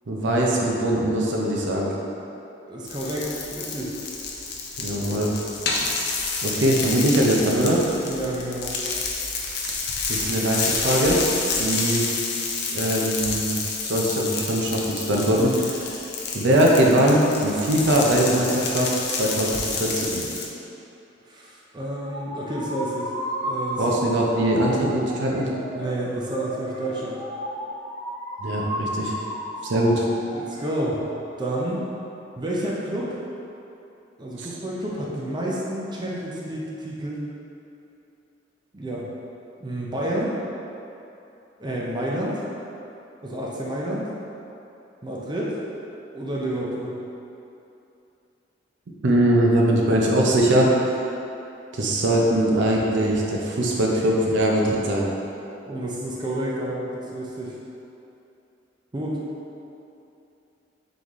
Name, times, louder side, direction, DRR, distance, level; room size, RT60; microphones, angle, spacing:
voice 1, 0.1-1.9 4.8-5.3 6.4-7.8 9.6-9.7 10.1-11.2 11.6-12.1 12.7-14.8 15.1-15.8 16.3-18.9 19.2-20.3 23.8-25.5 28.4-29.2 29.6-30.0 34.4-34.5 49.0-50.7 51.7-55.1, right 1 dB, 70° right, -2 dB, 0.6 m, -21 dB
voice 2, 2.7-4.0 8.0-8.8 21.3-23.1 23.4-24.0 25.7-27.2 30.2-31.0 31.4-31.8 32.4-33.2 34.2-37.2 38.7-39.1 39.6-40.3 41.6-42.4 43.2-44.1 45.0-45.6 46.1-47.0 55.7-57.6 58.9-59.2, right 1 dB, 25° right, -5 dB, 0.5 m, -29 dB
sound 1, 2.9-20.5, left 4 dB, 60° left, 0.5 m, -29 dB
sound 2, 22.0-30.9, equal, 40° right, 1.0 m, -33 dB
4.0 x 3.2 x 3.5 m, 2.8 s
head